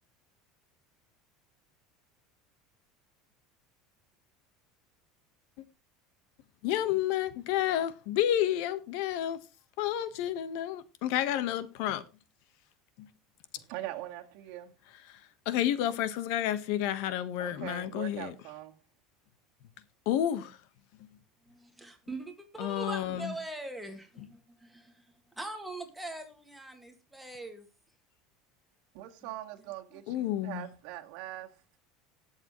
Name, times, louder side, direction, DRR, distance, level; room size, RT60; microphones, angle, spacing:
voice 1, 6.6-9.4 9.8-12.0 13.0-13.1 15.1-15.2 15.4-18.3 20.0-20.6 22.6-23.3 30.1-30.7, left 11 dB, 65° left, 1.2 m, -30 dB
voice 2, 13.6-14.7 17.4-18.8 28.9-31.8, right 14 dB, 65° right, 1.9 m, -42 dB
voice 3, 21.5-27.7 29.9-30.0, right 2 dB, 5° right, 1.9 m, -42 dB
19.5 x 7.2 x 3.1 m
cardioid pair, 150°, 0 cm